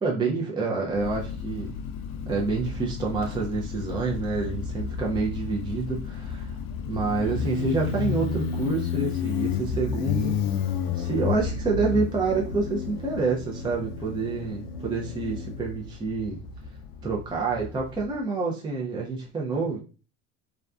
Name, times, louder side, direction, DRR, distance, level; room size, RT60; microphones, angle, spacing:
voice 1, 0.0-1.8 2.3-6.6 6.9-10.4 10.9-16.4 17.0-19.8, right 4 dB, 10° right, -2 dB, 0.4 m, -28 dB
Motorcycle, 0.9-18.1, left 6 dB, 65° left, 0.5 m, -31 dB
2.5 x 2.2 x 2.3 m, 0.35 s
supercardioid pair, 90°, 41 cm